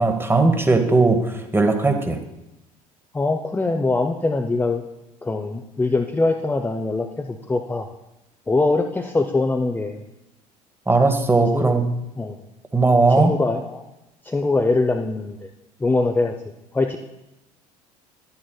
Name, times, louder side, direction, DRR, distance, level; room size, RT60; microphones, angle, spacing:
voice 1, 0.0-2.2 10.9-11.8 12.7-13.3, right 3 dB, 10° right, 7 dB, 1.1 m, -18 dB
voice 2, 3.1-4.8 5.2-7.9 8.5-10.0 11.5-11.7 12.2-12.4 13.2-13.8 14.2-15.5 15.8-16.3 16.7-17.0, left 3 dB, 10° left, 3 dB, 0.5 m, -22 dB
11.0 x 9.5 x 2.2 m, 0.91 s
figure-of-eight pair, 60°, 19 cm